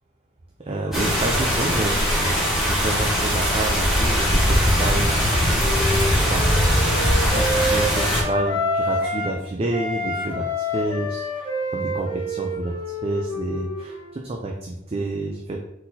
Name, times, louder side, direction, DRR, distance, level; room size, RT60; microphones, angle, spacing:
voice 1, 0.6-2.5 2.8-6.0 6.3-6.5 6.9-11.5 11.7-12.7 13.0-15.6, right 2 dB, 30° right, 1 dB, 0.4 m, -29 dB
sound 1, 0.9-8.2, equal, ahead, 1.3 m, -20 dB
Wind instrument woodwind instrument, 5.0-9.4 9.7-14.2, left 1 dB, 25° left, 1.1 m, -28 dB
4.2 x 4.0 x 2.7 m, 0.83 s
head